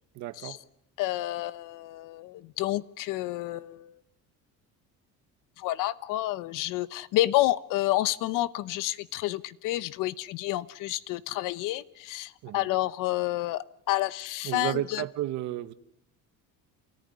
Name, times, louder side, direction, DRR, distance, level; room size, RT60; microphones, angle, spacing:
voice 1, 0.1-0.6 12.4-12.6 14.4-15.7, right 14 dB, 60° right, 1.3 m, -32 dB
voice 2, 1.0-4.0 5.6-15.0, left 16 dB, 70° left, 1.0 m, -29 dB
28.0 x 18.0 x 9.7 m
cardioid pair, 175°, 33 cm